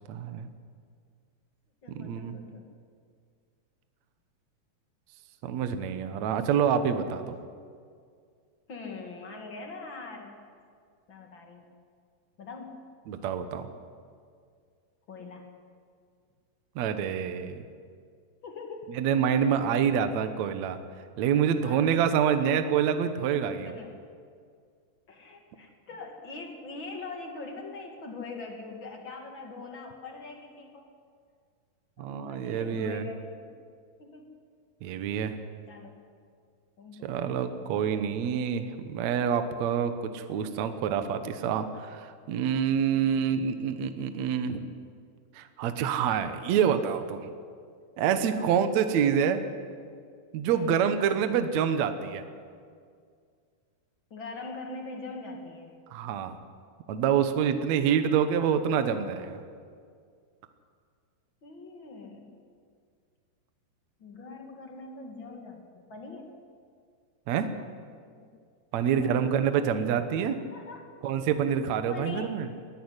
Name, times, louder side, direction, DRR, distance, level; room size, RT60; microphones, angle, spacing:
voice 1, 0.1-0.5 1.9-2.4 5.4-7.3 13.1-13.7 16.7-17.6 18.9-20.8 21.2-23.7 32.0-33.1 34.8-35.3 37.0-44.7 45.3-47.2 48.0-49.4 50.3-52.2 55.9-56.4 56.9-59.4 67.3-67.5 68.7-70.4 71.0-72.5, right 8 dB, 80° right, 9 dB, 1.6 m, -27 dB
voice 2, 1.8-2.6 8.7-10.4 11.1-11.6 12.4-12.9 15.1-15.5 18.4-18.9 21.6-22.0 23.6-23.9 25.1-30.9 32.0-33.5 34.0-34.3 35.7-36.0 36.8-37.3 42.8-43.2 48.4-48.7 50.5-50.8 54.1-55.7 61.4-62.3 64.0-65.6 65.9-66.3 67.9-68.3 68.9-69.3 69.6-69.9 70.4-70.9 71.9-72.3, left 3 dB, 40° left, 2 dB, 1.8 m, -42 dB
19.5 x 13.5 x 9.8 m, 2.1 s
omnidirectional pair, 4.8 m